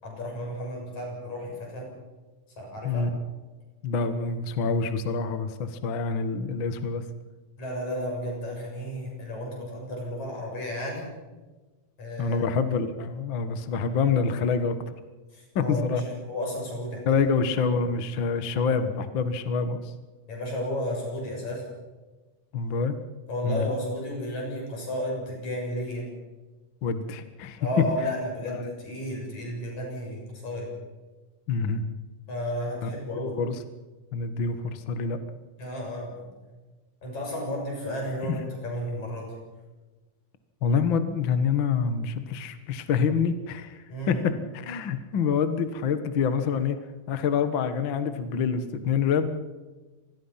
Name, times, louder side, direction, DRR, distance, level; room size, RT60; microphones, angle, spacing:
voice 1, 0.0-1.9 2.6-3.1 7.6-11.0 12.0-12.4 15.3-17.0 20.3-21.6 23.3-26.1 27.6-30.7 32.3-33.4 35.6-36.3 37.0-39.3 43.9-44.4, equal, 65° left, 0 dB, 8.3 m, -33 dB
voice 2, 3.8-7.1 12.2-14.8 15.6-16.0 17.1-19.9 22.5-23.0 23.4-23.7 26.8-27.9 28.5-28.7 31.5-31.8 32.8-32.9 33.4-33.6 34.1-35.2 38.3-38.4 40.6-46.8 47.1-49.3, left 5 dB, 50° left, 9 dB, 1.8 m, -26 dB
26.5 x 20.5 x 5.8 m, 1.2 s
omnidirectional pair, 3.5 m